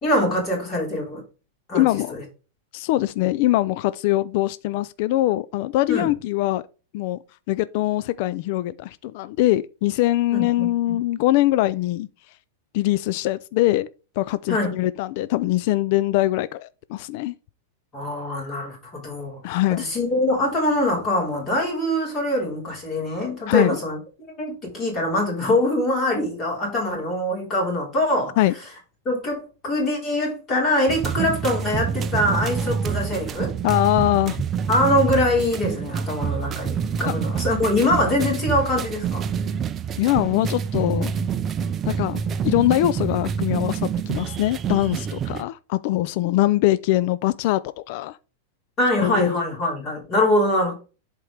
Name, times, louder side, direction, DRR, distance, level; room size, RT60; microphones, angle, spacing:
voice 1, 0.0-1.2 1.7-1.8 2.1-2.2 5.9-6.1 10.3-11.0 14.5-14.8 17.9-24.0 24.4-28.4 29.0-33.5 34.7-39.3 48.8-50.7, left 1 dB, 25° left, 4.0 m, -23 dB
voice 2, 1.7-2.2 2.7-6.6 6.9-7.2 7.5-12.1 12.7-13.9 14.2-17.3 19.4-19.8 23.5-23.8 28.4-28.5 33.6-34.4 37.1-37.2 40.0-41.1 41.9-48.2 49.0-49.4, left 16 dB, 50° left, 0.4 m, -22 dB
sound 1, 30.9-45.4, right 7 dB, 20° right, 0.5 m, -27 dB
11.0 x 4.5 x 3.4 m
supercardioid pair, 155°, 0 cm